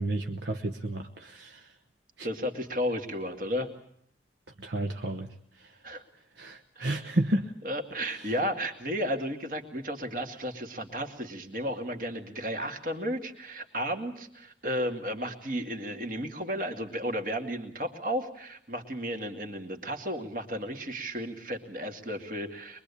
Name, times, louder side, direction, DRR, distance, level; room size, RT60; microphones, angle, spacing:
voice 1, 0.0-1.7 2.2-2.3 4.6-5.3 6.4-7.5, right 1 dB, 80° right, 5 dB, 1.2 m, -31 dB
voice 2, 2.2-3.7 5.8-6.0 6.8-7.0 7.6-22.8, equal, 50° right, 5 dB, 2.4 m, -33 dB
23.0 x 22.5 x 8.5 m, 0.64 s
head